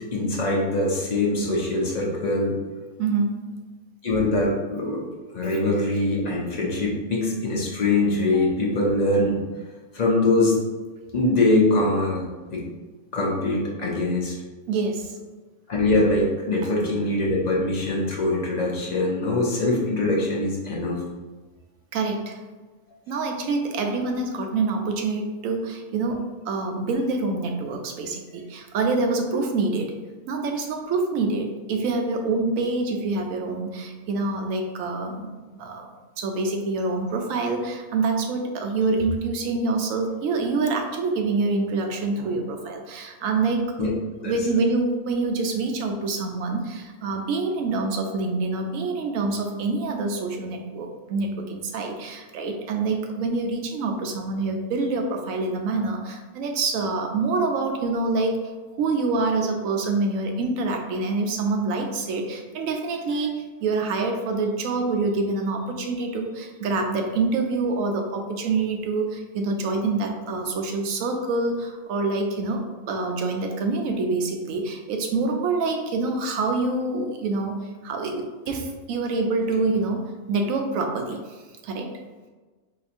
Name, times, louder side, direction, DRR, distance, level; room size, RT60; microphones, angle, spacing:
voice 1, 0.1-2.6 4.0-5.0 5.3-9.4 9.9-10.6 11.1-12.6 13.1-14.4 15.7-21.0 43.8-43.9 44.2-44.3, left 2 dB, 55° left, -3 dB, 0.4 m, -23 dB
voice 2, 3.0-3.5 8.2-8.4 14.7-15.1 16.6-16.7 21.9-22.4 23.1-29.9 30.3-35.9 36.2-58.4 58.7-81.2 81.6-81.9, right 3 dB, 70° right, 3 dB, 0.9 m, -26 dB
4.1 x 2.8 x 2.5 m, 1.3 s
omnidirectional pair, 1.5 m